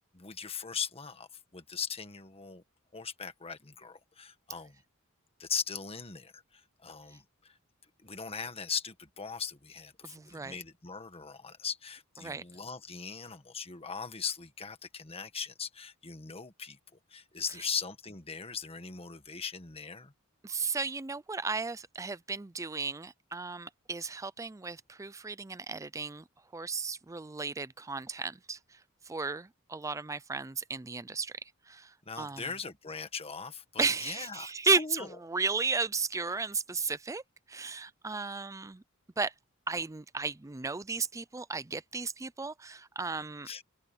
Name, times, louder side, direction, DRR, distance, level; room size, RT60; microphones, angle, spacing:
voice 1, 0.1-2.6 2.9-4.8 5.4-7.6 8.0-16.8 17.1-20.1 32.0-35.1 43.5-43.7, left 6 dB, 30° left, 1.5 m, -39 dB
voice 2, 10.0-10.6 12.2-12.4 20.4-26.2 26.5-32.5 33.8-37.2 37.5-38.8 39.2-39.3 39.7-43.5, right 4 dB, 15° right, 0.4 m, -34 dB
open air
head